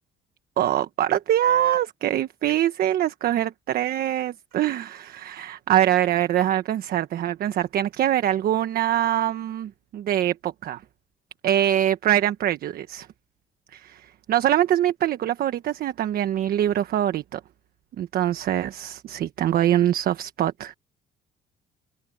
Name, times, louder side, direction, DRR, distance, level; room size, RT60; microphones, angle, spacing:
voice 1, 0.6-10.8 11.4-13.1 13.7-17.4 18.0-20.7, right 11 dB, 60° right, 1.3 m, -24 dB
cardioid pair, 110°, 17 cm